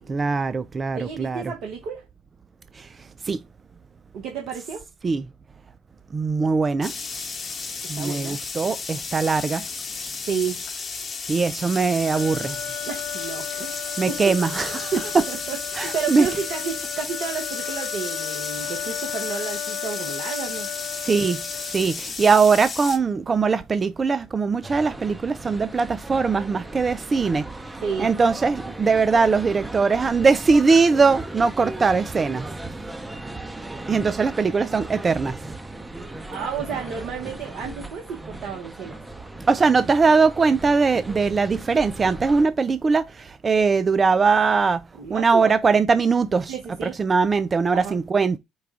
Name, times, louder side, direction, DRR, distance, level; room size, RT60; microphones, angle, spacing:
voice 1, 0.1-1.4 3.3-3.4 5.0-5.2 6.1-6.9 7.9-9.6 11.3-12.5 14.0-14.9 15.8-16.3 21.0-21.4 21.7-27.4 28.0-32.4 33.9-35.4 39.5-44.8 45.1-46.5 47.0-48.4, right 4 dB, 35° right, 0.4 m, -21 dB
voice 2, 0.9-2.1 4.1-4.8 8.0-8.4 10.3-10.6 12.9-14.3 14.9-20.7 27.8-28.1 33.1-33.3 36.0-39.0 44.9-45.6 46.5-47.0 47.7-48.0, right 6 dB, 65° right, 1.0 m, -31 dB
sound 1, 6.8-23.0, left 4 dB, 40° left, 1.1 m, -33 dB
sound 2, 12.1-22.1, left 10 dB, 75° left, 0.8 m, -35 dB
sound 3, 24.6-42.5, right 2 dB, 15° right, 0.8 m, -37 dB
4.7 x 2.3 x 4.8 m
hypercardioid pair, 60°, 0 cm